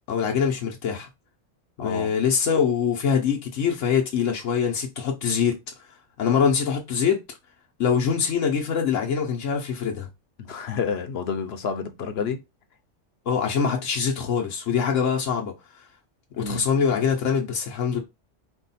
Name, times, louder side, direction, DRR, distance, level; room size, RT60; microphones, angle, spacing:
voice 1, 0.1-1.1 1.8-5.6 6.2-7.2 7.8-10.1 13.3-15.5 16.4-18.0, left 6 dB, 85° left, 1.2 m, -23 dB
voice 2, 1.8-2.1 10.4-12.4 16.3-16.7, left 6 dB, 60° left, 0.9 m, -29 dB
4.6 x 2.3 x 4.1 m
omnidirectional pair, 1.3 m